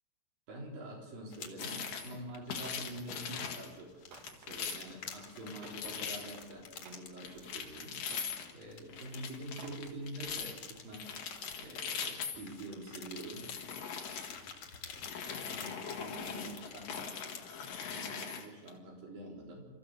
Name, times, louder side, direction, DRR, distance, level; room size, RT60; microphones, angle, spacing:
voice 1, 0.5-4.0 4.3-8.0 8.5-11.1 11.6-13.5 15.4-17.0 17.9-19.7, right 1 dB, 90° right, -1 dB, 5.9 m, -46 dB
sound 1, 1.3-17.9, left 6 dB, 55° left, 3.0 m, -49 dB
sound 2, 1.6-2.2 2.5-3.7 4.2-5.0 5.5-6.4 7.2-8.5 8.9-10.6 10.9-12.6 13.2-14.5 15.0-18.7, left 7 dB, 75° left, 3.5 m, -41 dB
sound 3, 2.6-2.9 3.3-3.6 4.0-6.4 6.7-7.5 8.0-8.9 9.4-9.9 10.3-10.5, right 6 dB, 55° right, 2.1 m, -56 dB
26.0 x 14.5 x 6.8 m, 1.2 s
omnidirectional pair, 3.9 m